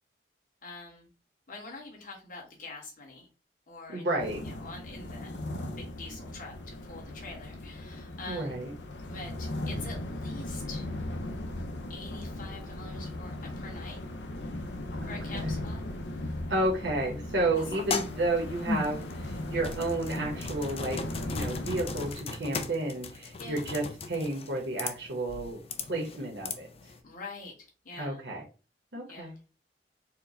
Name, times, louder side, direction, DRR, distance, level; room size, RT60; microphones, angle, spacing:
voice 1, 0.6-1.1 1.5-3.3 3.7-4.1 4.4-8.6 9.1-10.9 11.9-14.0 15.1-15.8 17.5-17.6 18.6-18.8 23.4-23.6 27.0-28.2 29.1-29.4, left 3 dB, 50° left, -1 dB, 1.4 m, -45 dB
voice 2, 3.9-4.4 8.3-8.7 15.0-15.6 16.5-25.6 25.9-26.7 28.0-28.4 28.9-29.3, right 2 dB, 70° right, -3 dB, 0.9 m, -31 dB
sound 1, 4.2-22.1, left 1 dB, 80° left, 0.7 m, -38 dB
sound 2, 17.6-27.0, left 4 dB, 35° left, 0.5 m, -38 dB
4.5 x 2.1 x 3.8 m, 0.32 s
head